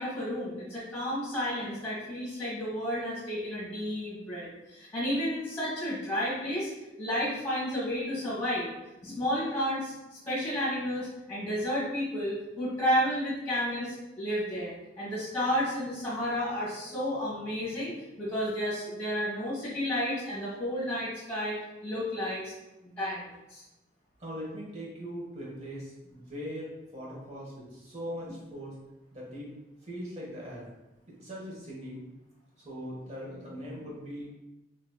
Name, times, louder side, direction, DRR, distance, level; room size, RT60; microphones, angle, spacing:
voice 1, 0.0-6.7 7.0-8.7 9.0-17.9 18.2-21.6 21.8-22.5 22.8-23.6, equal, 15° left, -9 dB, 1.3 m, -32 dB
voice 2, 24.2-28.8 29.1-29.5 29.8-30.6 31.1-32.0 32.6-34.3, equal, 40° right, -4 dB, 1.0 m, -40 dB
3.2 x 2.9 x 2.2 m, 0.98 s
head